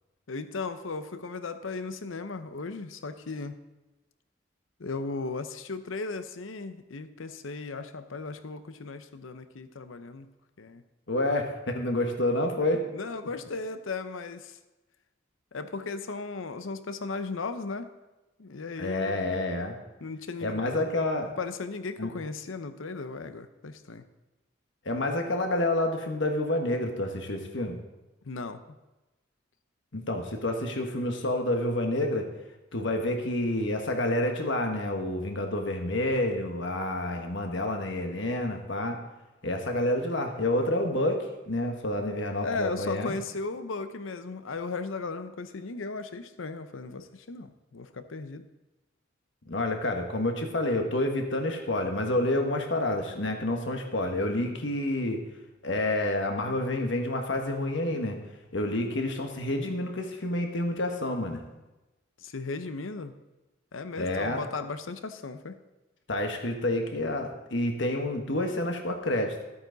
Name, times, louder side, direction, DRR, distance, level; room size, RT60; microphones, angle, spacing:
voice 1, 0.3-3.6 4.8-10.3 10.6-10.8 12.9-14.6 15.5-17.9 18.4-19.3 20.0-20.6 21.4-24.0 28.2-28.6 42.4-48.5 62.2-63.1 63.7-65.6, left 3 dB, 85° left, 10 dB, 0.7 m, -36 dB
voice 2, 11.1-12.9 18.8-19.7 20.4-21.3 22.0-22.1 24.8-27.8 29.9-32.3 32.7-39.0 39.4-43.1 49.5-55.2 55.6-58.2 58.5-61.4 64.0-64.4 66.1-69.5, left 1 dB, 70° left, 3 dB, 1.4 m, -28 dB
13.0 x 8.7 x 4.0 m, 1.1 s
head